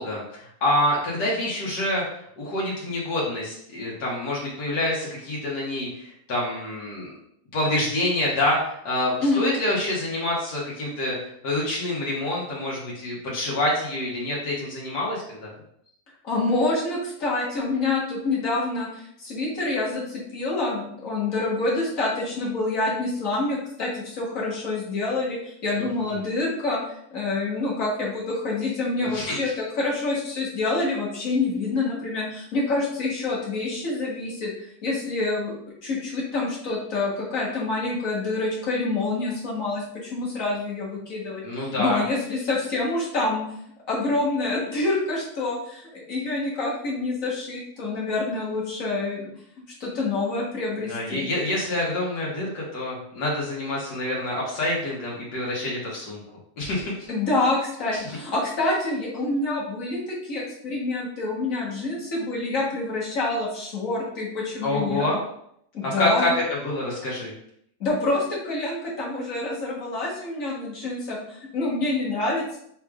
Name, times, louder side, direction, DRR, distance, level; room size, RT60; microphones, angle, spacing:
voice 1, 0.0-7.1 7.5-15.5 25.8-26.1 29.0-29.4 41.4-42.0 50.8-56.2 56.6-57.1 57.9-58.0 64.6-65.2 65.8-67.3, left 1 dB, 90° left, -5 dB, 1.7 m, -27 dB
voice 2, 16.2-26.8 27.1-34.5 34.8-41.4 41.8-43.4 43.9-49.3 49.8-51.3 57.1-65.1 65.7-66.3 67.8-72.6, left 2 dB, 60° left, -4 dB, 1.7 m, -27 dB
4.7 x 4.1 x 2.4 m, 0.69 s
omnidirectional pair, 1.7 m